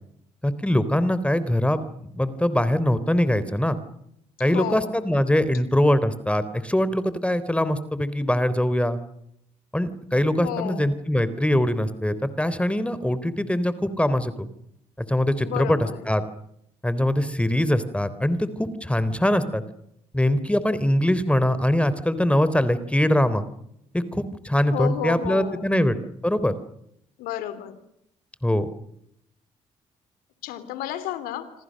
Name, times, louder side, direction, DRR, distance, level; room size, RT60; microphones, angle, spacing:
voice 1, 0.4-3.8 4.4-9.0 9.7-14.5 15.1-15.8 16.1-16.2 16.8-19.6 20.1-23.4 23.9-26.0 26.2-26.5 28.4-28.7, left 1 dB, 10° left, 14 dB, 3.7 m, -22 dB
voice 2, 4.4-5.0 10.4-10.9 15.4-16.1 24.7-25.7 27.2-27.8 30.4-31.5, left 12 dB, 80° left, 12 dB, 3.2 m, -31 dB
28.5 x 26.0 x 6.6 m, 0.76 s
hypercardioid pair, 50°, 15 cm